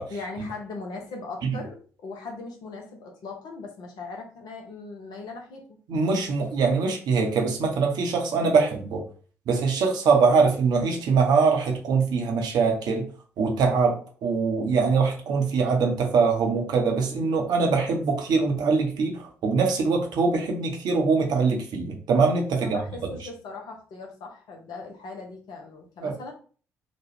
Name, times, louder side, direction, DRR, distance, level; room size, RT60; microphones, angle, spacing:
voice 1, 0.1-5.6 22.6-26.3, left 3 dB, 60° left, 2 dB, 0.8 m, -39 dB
voice 2, 5.9-9.0 9.5-13.0 13.4-22.8 26.0-26.1, right 4 dB, 60° right, 2 dB, 0.8 m, -23 dB
2.9 x 2.3 x 3.1 m, 0.41 s
figure-of-eight pair, 45°, 8 cm